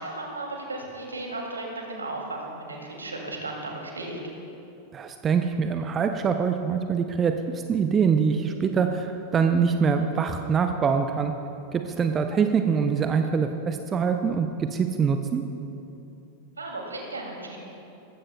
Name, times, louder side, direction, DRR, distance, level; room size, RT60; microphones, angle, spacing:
voice 1, 0.0-4.2 16.6-17.6, right 2 dB, 75° right, 0 dB, 2.5 m, -35 dB
voice 2, 4.9-11.3 11.7-15.4, right 6 dB, 25° right, 7 dB, 0.6 m, -24 dB
19.5 x 15.5 x 2.3 m, 2.8 s
figure-of-eight pair, 90°, 0 cm